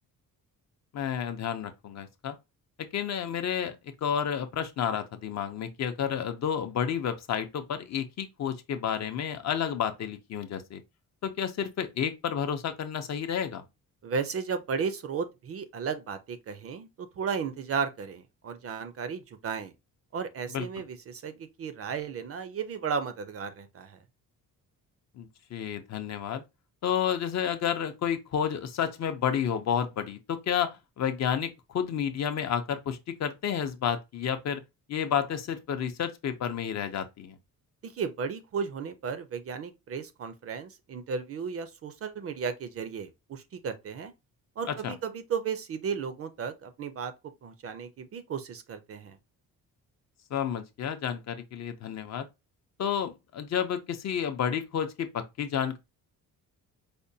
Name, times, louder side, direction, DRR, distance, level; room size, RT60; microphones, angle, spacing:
voice 1, 0.9-2.4 2.8-3.7 4.0-10.8 11.2-13.6 20.5-20.7 25.2-26.4 26.8-34.6 34.9-37.4 44.6-45.0 50.3-52.3 52.8-55.8, left 8 dB, 50° left, 0.5 m, -31 dB
voice 2, 14.0-19.7 20.1-24.0 37.8-44.1 44.6-47.1 47.4-49.2, right 6 dB, 40° right, 0.4 m, -34 dB
5.0 x 2.2 x 2.6 m
cardioid pair, 155°, 35 cm